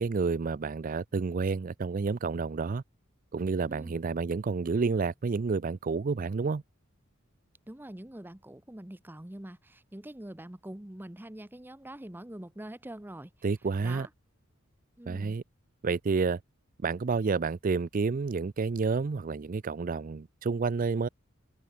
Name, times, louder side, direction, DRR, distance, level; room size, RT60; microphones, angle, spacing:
voice 1, 0.0-2.8 3.3-6.6 13.4-14.1 15.1-15.4 15.8-16.4 16.8-21.1, right 4 dB, 40° right, 0.4 m, -29 dB
voice 2, 7.7-13.3 13.8-14.1 15.0-15.4, right 1 dB, 10° right, 0.7 m, -44 dB
head